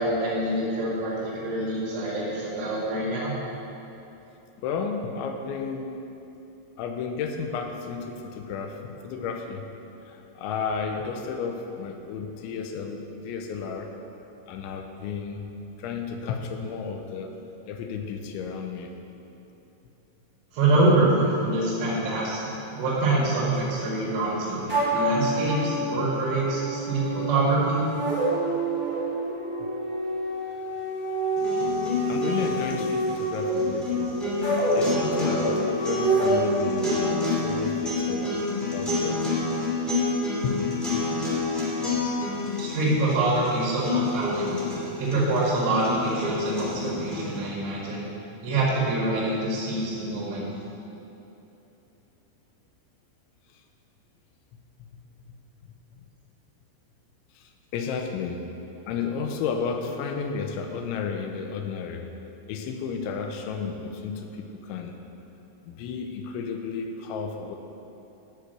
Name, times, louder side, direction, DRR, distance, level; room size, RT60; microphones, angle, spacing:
voice 1, 0.0-3.3 20.5-24.6 24.9-27.8 42.6-44.5 45.0-48.0 48.4-50.5, right 2 dB, 75° right, -9 dB, 4.3 m, -25 dB
voice 2, 4.6-6.0 6.8-9.7 10.0-13.9 14.5-15.5 15.8-17.4 17.7-18.9 29.6-29.7 32.1-34.2 34.8-39.3 40.4-40.6 45.2-45.3 53.5-53.6 54.8-55.4 57.4-58.5 58.9-62.1 62.5-65.0 65.6-67.6, left 5 dB, 85° left, 4 dB, 3.0 m, -33 dB
sound 1, 24.7-37.0, right 2 dB, 20° left, 1.1 m, -27 dB
sound 2, 31.4-47.4, left 3 dB, ahead, 0.6 m, -29 dB
12.5 x 4.9 x 7.9 m, 3.0 s
omnidirectional pair, 5.6 m